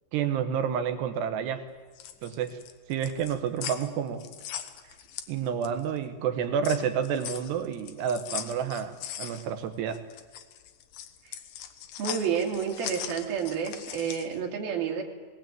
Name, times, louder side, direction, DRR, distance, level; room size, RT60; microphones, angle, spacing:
voice 1, 0.1-1.6 2.2-2.6 2.9-4.3 5.3-10.0, right 8 dB, 75° right, 9 dB, 3.0 m, -29 dB
sound 1, 1.8-5.9 6.3-14.4, left 10 dB, 70° left, 2.2 m, -40 dB
voice 2, 12.0-15.0, right 7 dB, 55° right, 1 dB, 4.1 m, -30 dB
19.5 x 18.5 x 9.1 m, 1.4 s
omnidirectional pair, 5.3 m